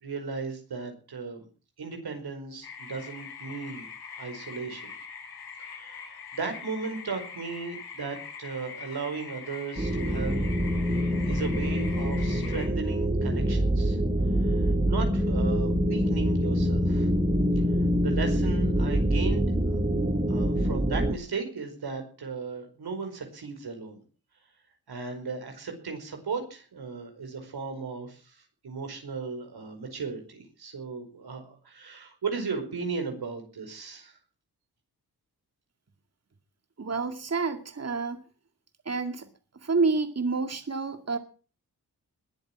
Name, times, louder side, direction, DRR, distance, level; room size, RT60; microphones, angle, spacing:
voice 1, 0.0-1.5 1.8-4.9 5.7-10.4 11.3-14.0 14.4-17.1 18.0-19.6 20.3-24.0 24.9-34.2, right 4 dB, 75° right, 4 dB, 5.1 m, -36 dB
sound 1, 2.6-12.7, left 6 dB, 80° left, 4.9 m, -43 dB
sound 2, 9.8-21.1, equal, 20° right, 2.5 m, -25 dB
voice 2, 36.8-38.2 38.9-39.3 39.5-41.2, right 4 dB, 40° right, 8 dB, 2.2 m, -28 dB
21.0 x 8.0 x 7.4 m, 0.39 s
cardioid pair, 45°, 38 cm